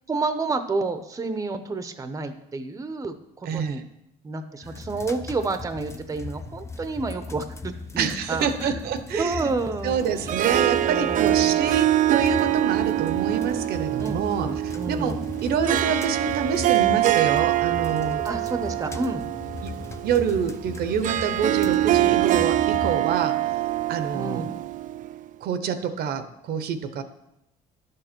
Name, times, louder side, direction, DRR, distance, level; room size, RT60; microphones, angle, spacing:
voice 1, 0.1-3.8 4.2-8.8 9.1-10.0 10.8-11.6 14.0-15.2 18.2-19.3 24.1-24.5, right 3 dB, 20° right, 9 dB, 0.7 m, -30 dB
voice 2, 3.5-3.8 8.0-9.5 9.8-18.3 19.6-19.7 20.0-23.4 23.9-24.4 25.4-27.0, right 7 dB, 70° right, 10 dB, 0.8 m, -27 dB
sound 1, 4.6-23.0, left 3 dB, 15° left, 0.6 m, -38 dB
Harp, 10.0-25.3, right 13 dB, 50° right, 0.4 m, -24 dB
11.0 x 6.7 x 4.4 m, 0.82 s
cardioid pair, 110°, 17 cm